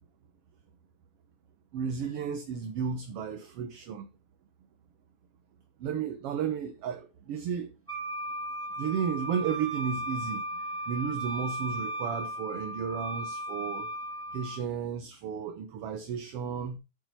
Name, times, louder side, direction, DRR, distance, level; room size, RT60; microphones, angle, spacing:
voice 1, 1.7-4.1 5.8-7.7 8.8-13.9 14.3-16.8, right 7 dB, 60° right, 1.7 m, -33 dB
Wind instrument woodwind instrument, 7.9-14.6, right 1 dB, 5° right, 1.4 m, -36 dB
9.1 x 7.3 x 4.4 m
omnidirectional pair, 3.6 m